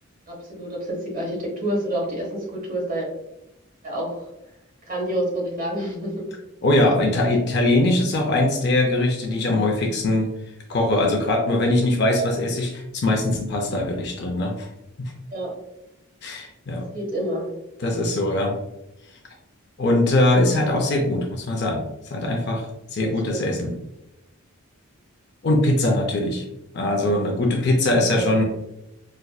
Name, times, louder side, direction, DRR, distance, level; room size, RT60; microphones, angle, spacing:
voice 1, 0.3-3.1 3.8-4.3 4.9-6.3 6.8-6.9 15.3-15.5 16.9-17.5 23.0-23.5 27.0-27.3 28.1-28.3, right 1 dB, 40° right, -2 dB, 1.0 m, -28 dB
voice 2, 6.6-10.3 10.7-14.7 15.0-15.1 16.2-16.9 17.8-18.6 19.8-22.6 22.9-23.7 25.4-26.4 26.7-28.4, left 1 dB, 55° left, 1 dB, 0.5 m, -21 dB
4.2 x 2.5 x 2.3 m, 0.90 s
head